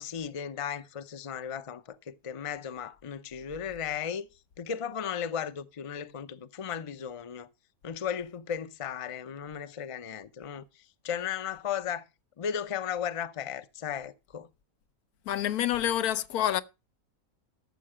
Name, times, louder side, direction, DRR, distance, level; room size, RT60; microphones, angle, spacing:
voice 1, 0.0-4.3 4.6-7.5 7.8-12.0 12.4-14.5, left 8 dB, 35° left, 0.5 m, -35 dB
voice 2, 15.3-16.6, left 11 dB, 80° left, 1.2 m, -27 dB
13.0 x 7.5 x 4.9 m
omnidirectional pair, 1.6 m